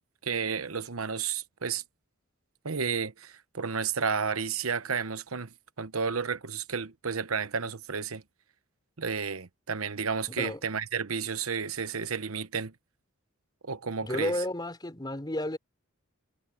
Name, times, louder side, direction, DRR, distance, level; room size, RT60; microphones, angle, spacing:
voice 1, 0.2-1.8 2.6-8.2 9.0-12.7 13.6-14.4, right 6 dB, 90° right, 1.0 m, -32 dB
voice 2, 10.3-10.6 14.0-15.6, left 1 dB, 20° left, 3.9 m, -32 dB
head